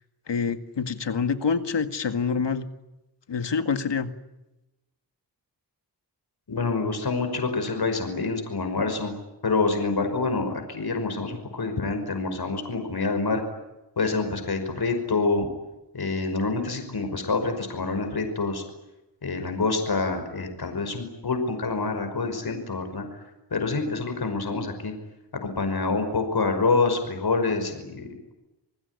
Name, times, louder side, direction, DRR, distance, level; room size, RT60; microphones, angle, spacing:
voice 1, 0.3-2.7 3.3-4.1, left 5 dB, 85° left, 9 dB, 2.1 m, -26 dB
voice 2, 6.5-9.1 9.4-13.4 14.0-15.5 15.9-18.6 19.2-23.1 23.5-24.9 25.4-28.3, left 3 dB, 60° left, 6 dB, 5.6 m, -27 dB
28.5 x 20.0 x 9.7 m, 0.97 s
wide cardioid pair, 85°, 41 cm